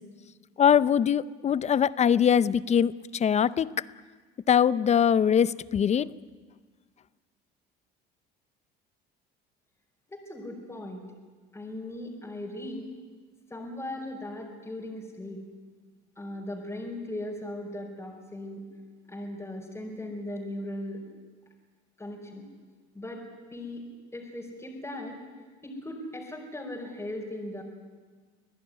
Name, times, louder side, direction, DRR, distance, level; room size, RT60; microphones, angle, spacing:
voice 1, 0.6-3.7 4.5-6.1, left 8 dB, 35° left, 17 dB, 0.7 m, -22 dB
voice 2, 10.1-11.0 11.5-12.9 13.5-15.4 16.1-18.6 19.1-21.1 22.0-22.5 22.9-23.2 23.5-23.8 24.1-25.2 25.6-27.6, left 1 dB, 15° left, -1 dB, 5.1 m, -38 dB
25.5 x 16.5 x 9.6 m, 1.5 s
supercardioid pair, 100°, 20 cm